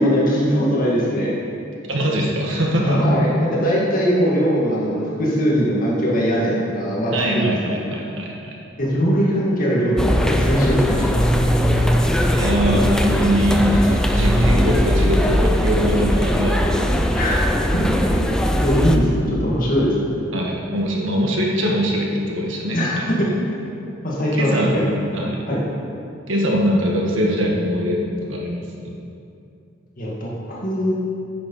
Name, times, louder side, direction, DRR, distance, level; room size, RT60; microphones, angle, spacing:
voice 1, 0.0-1.3 2.8-7.6 8.8-11.3 17.1-17.9 18.6-20.2 22.7-23.3 24.0-24.9 25.5-25.6 30.0-30.9, equal, 45° left, -5 dB, 2.0 m, -20 dB
voice 2, 1.9-3.0 7.1-8.6 12.3-16.8 20.3-23.3 24.4-24.7 25.1-25.4 26.3-28.9, equal, 85° right, -2 dB, 1.7 m, -22 dB
sound 1, 10.0-19.0, equal, 5° left, 0.6 m, -19 dB
9.8 x 7.1 x 5.6 m, 2.6 s
head